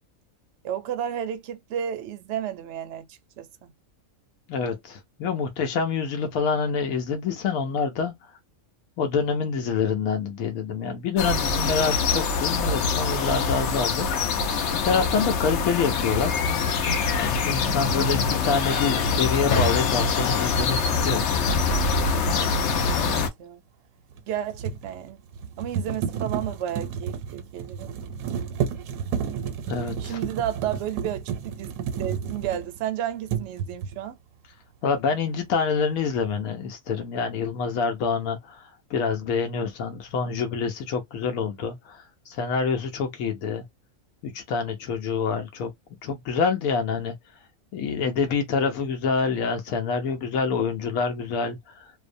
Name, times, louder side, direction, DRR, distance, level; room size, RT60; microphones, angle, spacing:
voice 1, 0.6-3.7 17.6-17.7 23.0-23.6 24.3-25.2 25.6-28.0 30.0-31.7 32.0-34.2, right 10 dB, 65° right, 0.7 m, -32 dB
voice 2, 4.5-8.4 9.0-14.4 14.7-16.4 17.2-21.6 29.7-30.2 34.8-43.7 44.2-45.7 46.0-47.4 47.7-51.9, left 5 dB, 85° left, 1.1 m, -27 dB
sound 1, 11.2-23.3, left 5 dB, 65° left, 0.8 m, -24 dB
sound 2, 20.9-21.1 24.1-32.9 33.2-34.0, right 7 dB, 85° right, 1.0 m, -31 dB
2.6 x 2.1 x 2.5 m
omnidirectional pair, 1.5 m